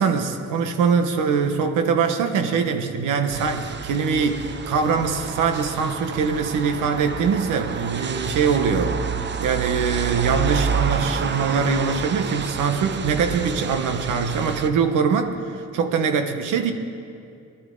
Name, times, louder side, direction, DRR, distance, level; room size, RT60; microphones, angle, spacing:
voice 1, 0.0-8.9 9.4-16.7, right 5 dB, 85° right, 6 dB, 1.3 m, -23 dB
sound 1, 3.3-14.7, right 6 dB, 35° right, 0.8 m, -29 dB
19.0 x 11.5 x 3.9 m, 2.5 s
cardioid pair, 90°, 30 cm